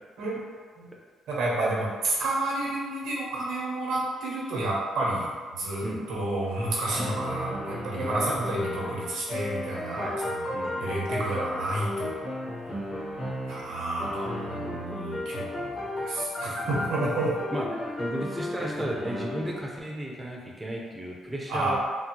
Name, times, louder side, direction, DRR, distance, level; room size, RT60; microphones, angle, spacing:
voice 1, 1.3-10.5 10.8-12.2 13.5-17.3 21.5-21.8, right 2 dB, 90° right, -5 dB, 0.9 m, -30 dB
sound 1, 6.4-13.7 14.0-19.6, left 1 dB, 60° left, 1.2 m, -34 dB
voice 2, 9.9-10.2 10.5-10.9 12.7-12.8 16.5-17.0 17.5-17.7 18.0-21.8, right 1 dB, 10° right, -2 dB, 0.5 m, -34 dB
3.7 x 2.0 x 2.9 m, 1.5 s
cardioid pair, 90°, 0 cm